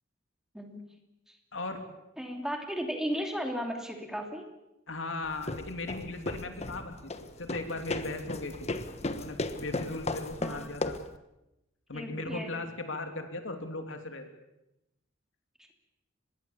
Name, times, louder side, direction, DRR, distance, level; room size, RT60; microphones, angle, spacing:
voice 1, 1.5-1.8 4.9-8.7 9.1-11.0 11.9-14.2, left 2 dB, 75° left, 6 dB, 3.0 m, -38 dB
voice 2, 2.2-4.5 10.4-10.7 11.9-12.5, equal, 5° right, 3 dB, 2.9 m, -35 dB
sound 1, 5.2-11.2, left 2 dB, 35° left, 1.3 m, -36 dB
25.0 x 21.0 x 7.2 m, 0.91 s
head